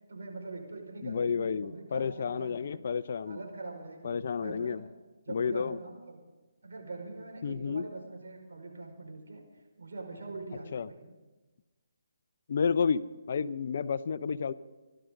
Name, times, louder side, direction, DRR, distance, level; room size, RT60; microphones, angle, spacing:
voice 1, 0.1-2.7 3.2-4.8 5.2-6.2 6.6-9.4 9.8-11.1, right 3 dB, 70° right, 2 dB, 5.3 m, -43 dB
voice 2, 1.0-3.4 4.0-4.9 5.3-5.8 7.4-7.8 10.7-10.9 12.5-14.5, left 6 dB, 55° left, 15 dB, 0.7 m, -31 dB
26.5 x 12.5 x 3.9 m, 1.2 s
hypercardioid pair, 155°, 0 cm